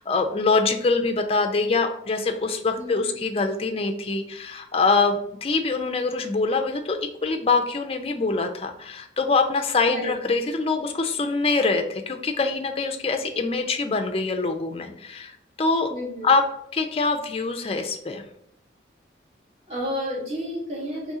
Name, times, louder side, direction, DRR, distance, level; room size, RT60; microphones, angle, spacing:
voice 1, 0.0-15.9 16.2-16.4 16.7-18.2, left 3 dB, 30° left, 5 dB, 0.4 m, -24 dB
voice 2, 2.8-3.1 9.9-10.1 15.9-16.3 19.7-21.1, equal, 35° right, -5 dB, 1.6 m, -31 dB
4.2 x 3.1 x 3.6 m, 0.73 s
head